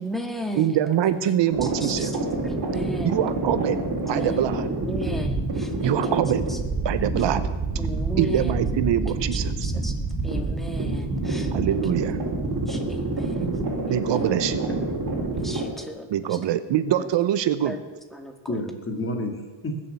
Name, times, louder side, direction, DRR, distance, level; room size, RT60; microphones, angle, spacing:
voice 1, 0.0-1.4 1.6-3.3 4.2-4.5 4.8-6.2 6.5-6.6 7.8-8.6 8.8-9.9 10.2-11.5 12.6-13.5 13.9-14.2 15.3-16.4 17.0-17.1 17.6-17.8 18.1-18.6, equal, ahead, 4 dB, 1.8 m, -36 dB
voice 2, 0.6-2.1 3.0-3.8 4.1-4.7 5.8-6.4 6.8-7.5 8.2-9.7 11.5-12.2 13.9-14.7 16.1-17.8, right 11 dB, 65° right, 13 dB, 0.9 m, -24 dB
sound 1, 1.5-15.6, right 2 dB, 40° right, 3.7 m, -27 dB
voice 3, 8.3-8.8 13.3-13.5 14.7-14.8 18.5-19.8, left 1 dB, 25° left, 4 dB, 2.5 m, -31 dB
19.5 x 7.4 x 8.2 m, 1.2 s
cardioid pair, 140°, 48 cm